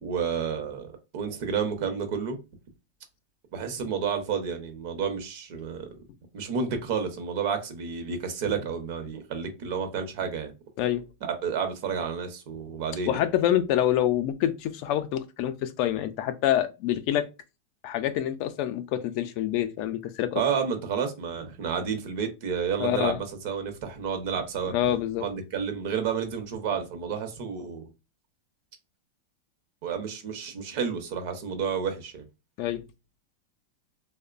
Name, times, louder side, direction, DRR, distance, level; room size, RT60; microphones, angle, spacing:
voice 1, 0.0-2.4 3.5-5.9 6.3-10.5 11.2-13.2 20.3-24.7 25.2-27.9 29.8-32.2, right 6 dB, 60° right, 0.7 m, -30 dB
voice 2, 13.1-17.3 17.8-20.4 22.8-23.2 24.7-25.3 32.6-32.8, left 11 dB, 55° left, 0.4 m, -26 dB
2.9 x 2.1 x 2.4 m
supercardioid pair, 135°, 0 cm